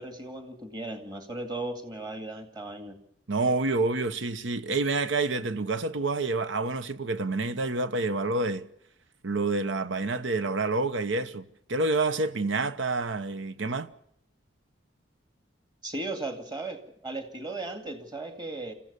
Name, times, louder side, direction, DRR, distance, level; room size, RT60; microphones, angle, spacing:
voice 1, 0.0-3.0 15.8-18.7, right 2 dB, 20° right, 2.2 m, -36 dB
voice 2, 3.3-8.7 9.2-13.9, right 3 dB, 80° right, 1.0 m, -28 dB
26.5 x 15.0 x 6.8 m
head